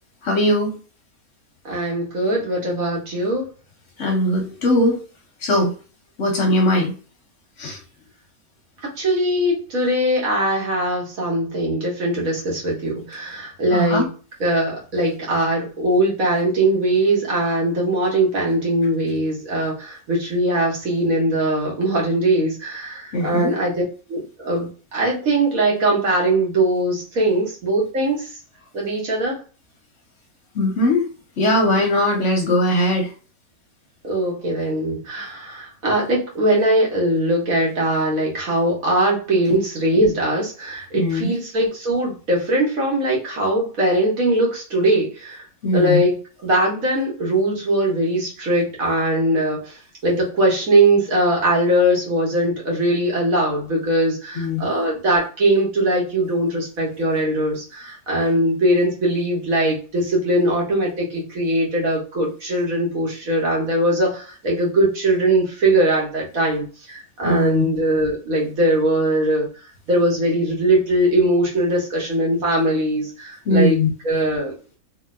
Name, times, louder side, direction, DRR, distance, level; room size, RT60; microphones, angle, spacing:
voice 1, 0.2-0.7 4.0-5.0 5.4-5.7 6.2-6.9 7.6-7.8 13.7-14.1 23.1-23.5 30.5-31.1 31.4-33.1 40.9-41.3 45.6-46.0 54.4-54.7 67.2-67.6 73.5-73.9, left 1 dB, 60° left, 1 dB, 1.0 m, -19 dB
voice 2, 1.6-3.4 9.0-14.1 14.4-23.7 24.1-28.3 28.7-29.4 34.0-45.4 45.7-46.1 46.4-49.8 50.0-69.5 69.9-73.8 74.0-74.8, right 1 dB, 65° right, -3 dB, 1.6 m, -21 dB
3.3 x 2.7 x 2.4 m, 0.36 s
omnidirectional pair, 1.6 m